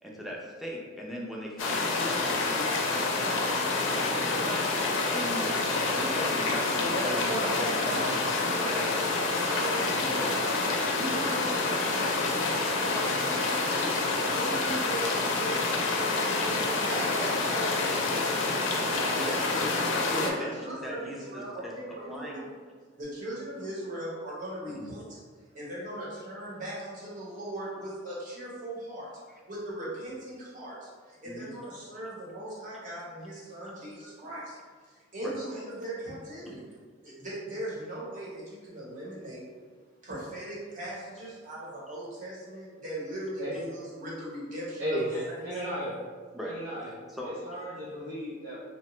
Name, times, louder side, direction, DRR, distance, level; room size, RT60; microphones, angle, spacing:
voice 1, 0.0-3.4 3.9-4.7 5.1-5.5 5.9-8.9 19.1-19.7 20.1-22.4 24.7-24.8 31.2-31.5 35.2-35.4 46.3-46.6 47.1-47.3, equal, ahead, -3 dB, 0.4 m, -39 dB
sound 1, 1.6-20.3, left 3 dB, 70° left, 0.4 m, -28 dB
voice 2, 6.7-13.9 14.2-19.7 20.1-22.6 22.9-25.2 25.5-29.1 29.5-34.6 34.8-36.6 37.0-39.5 40.0-45.3, right 1 dB, 45° right, -7 dB, 0.9 m, -38 dB
voice 3, 44.8-46.0 46.4-46.9 47.2-48.6, equal, 80° right, -7 dB, 0.6 m, -34 dB
2.8 x 2.1 x 3.0 m, 1.5 s
head